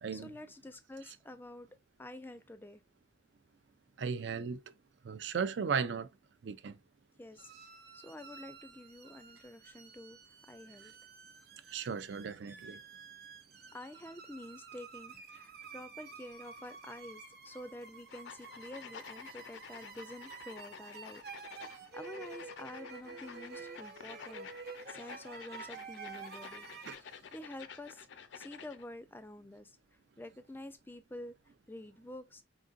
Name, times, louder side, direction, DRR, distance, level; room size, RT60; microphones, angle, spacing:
voice 1, 0.1-2.8 7.2-7.5 7.9-10.9 13.7-21.2 21.6-24.5 24.9-26.7 27.0-29.8 30.2-31.3 31.7-32.4, left 1 dB, 10° left, 0.3 m, -49 dB
voice 2, 4.0-4.6 5.0-6.1 6.4-6.8 11.7-12.8 26.9-27.0, right 6 dB, 75° right, 0.4 m, -36 dB
Violin pain, 7.4-26.9, right 5 dB, 55° right, 0.9 m, -50 dB
sound 1, 18.1-28.9, left 7 dB, 85° left, 0.5 m, -51 dB
3.9 x 3.6 x 2.4 m
head